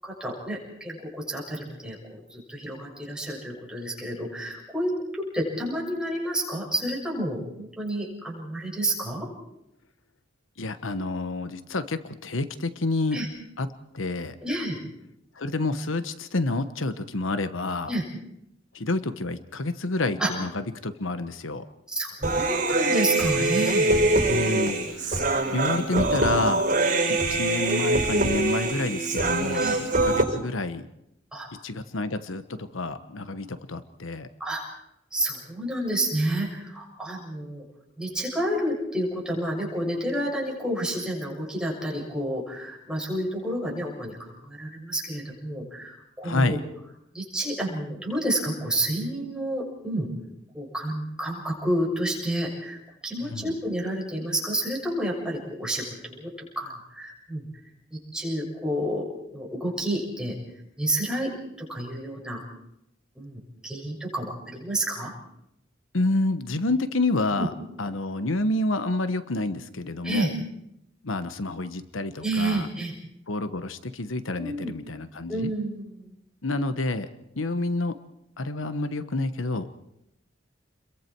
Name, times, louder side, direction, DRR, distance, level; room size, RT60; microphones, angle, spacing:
voice 1, 0.0-4.9 5.3-9.3 13.1-13.3 14.4-14.8 17.9-18.0 20.2-20.3 21.9-23.9 25.7-25.8 29.5-29.8 31.3-31.5 34.4-34.6 35.1-37.6 38.0-46.6 47.1-50.1 50.5-52.8 53.0-57.4 57.9-59.1 59.3-60.3 60.8-61.3 61.6-62.4 63.2-65.1 67.4-67.5 70.0-70.3 72.2-72.9 74.4-74.7 75.3-76.1, right 1 dB, 5° right, -3 dB, 7.0 m, -30 dB
voice 2, 10.6-13.2 13.6-13.7 13.9-14.4 15.4-17.9 18.7-21.6 24.3-25.2 25.5-26.7 27.1-30.9 31.6-34.3 46.2-46.6 53.2-53.5 65.9-67.5 67.8-70.3 71.0-72.7 73.3-75.5 76.4-77.1 77.4-78.0 78.4-79.7, left 2 dB, 85° left, 11 dB, 1.1 m, -28 dB
Human voice, 22.2-30.2, right 2 dB, 40° right, 7.5 m, -24 dB
30.0 x 22.5 x 4.6 m, 0.81 s
head